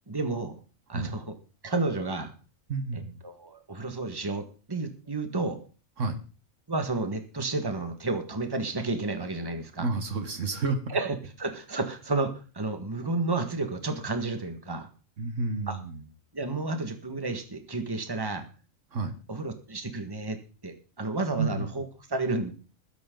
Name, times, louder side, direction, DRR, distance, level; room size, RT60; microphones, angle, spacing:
voice 1, 0.1-0.6 0.9-1.4 1.6-2.3 2.9-5.6 6.7-9.9 10.9-14.9 15.7-15.8 16.3-18.5 19.3-22.5, right 3 dB, 15° right, 6 dB, 1.7 m, -31 dB
voice 2, 2.7-3.2 6.0-6.2 9.8-11.0 15.2-16.0 18.9-19.1 21.4-21.7, right 3 dB, 65° right, 8 dB, 1.7 m, -30 dB
20.0 x 10.5 x 3.9 m, 0.36 s
omnidirectional pair, 1.4 m